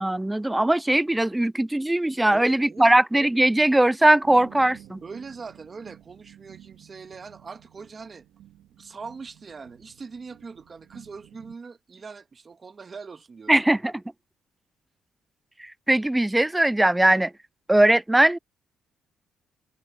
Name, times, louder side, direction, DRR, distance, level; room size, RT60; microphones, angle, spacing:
voice 1, 0.0-5.0 13.5-13.9 15.6-17.3 17.7-18.4, right 1 dB, 10° right, 0.3 m, -20 dB
voice 2, 2.3-2.9 5.0-8.2 8.8-13.6, right 5 dB, 35° right, 1.6 m, -41 dB
sound 1, 4.2-11.6, right 12 dB, 85° right, 2.2 m, -51 dB
cardioid pair, 90°, 0 cm